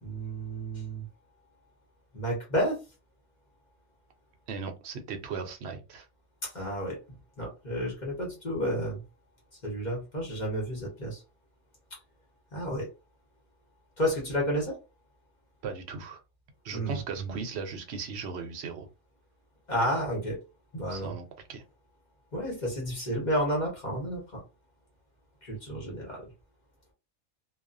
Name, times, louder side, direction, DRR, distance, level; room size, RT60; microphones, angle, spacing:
voice 1, 0.0-1.0 2.1-2.8 6.4-7.0 7.4-9.0 9.6-11.2 12.5-12.9 14.0-14.8 16.7-17.4 19.7-20.4 20.7-21.1 22.3-24.4 25.4-26.3, equal, 40° left, -2 dB, 1.0 m, -31 dB
voice 2, 4.5-6.1 15.6-16.2 16.6-18.9 20.9-21.2 21.5-21.6, right 5 dB, 65° right, 5 dB, 0.8 m, -37 dB
2.4 x 2.3 x 2.5 m, 0.28 s
omnidirectional pair, 1.3 m